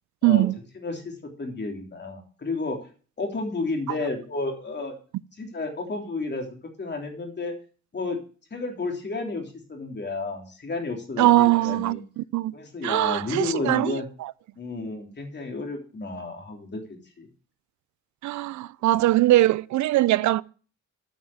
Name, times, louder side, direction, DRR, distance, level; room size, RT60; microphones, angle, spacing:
voice 1, 0.2-0.5 11.2-12.5 12.8-14.0 18.2-20.4, right 16 dB, 70° right, 0.5 m, -21 dB
voice 2, 0.7-2.8 3.2-4.9 5.4-6.5 6.8-7.5 7.9-8.2 8.5-12.0 12.5-14.1 14.6-17.3, left 3 dB, 35° left, 3.5 m, -32 dB
9.4 x 6.4 x 7.0 m
cardioid pair, 90°, 30 cm